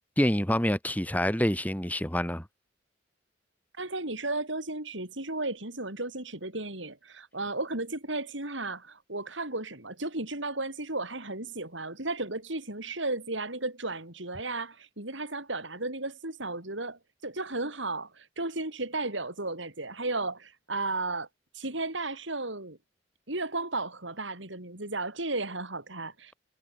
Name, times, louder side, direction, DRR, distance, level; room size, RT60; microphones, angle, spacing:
voice 1, 0.2-2.4, equal, 10° left, 2.6 m, -27 dB
voice 2, 3.8-21.3 21.5-22.8 23.3-26.4, right 2 dB, 75° right, 7.0 m, -34 dB
head